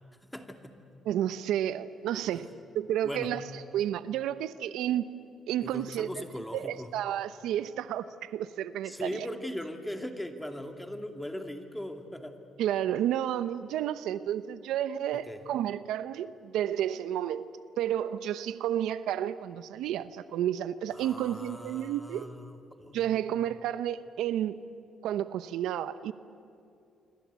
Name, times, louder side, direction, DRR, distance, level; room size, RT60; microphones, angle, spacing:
voice 1, 0.2-0.8 2.1-2.4 3.0-3.4 5.6-6.9 8.8-12.4 15.1-15.4 20.9-23.2, left 1 dB, 5° left, 6 dB, 2.6 m, -39 dB
voice 2, 1.0-2.5 2.7-3.4 3.7-5.1 5.5-6.1 6.5-9.3 12.6-17.5 17.8-22.3 22.9-24.6 25.0-26.1, right 11 dB, 85° right, 14 dB, 0.8 m, -31 dB
26.5 x 25.0 x 8.3 m, 2.6 s
cardioid pair, 90°, 0 cm